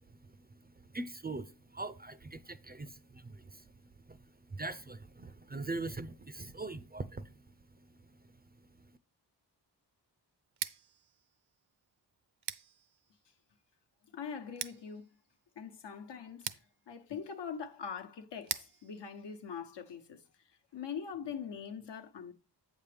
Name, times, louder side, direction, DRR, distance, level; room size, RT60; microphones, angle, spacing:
voice 1, 0.0-9.0, right 3 dB, 25° right, 0.4 m, -43 dB
Scissors, 10.4-20.3, right 8 dB, 70° right, 0.6 m, -47 dB
voice 2, 14.1-15.1 15.6-16.5 16.9-20.2 20.5-22.3, left 7 dB, 75° left, 1.1 m, -42 dB
8.5 x 7.1 x 3.4 m
wide cardioid pair, 140°, 42 cm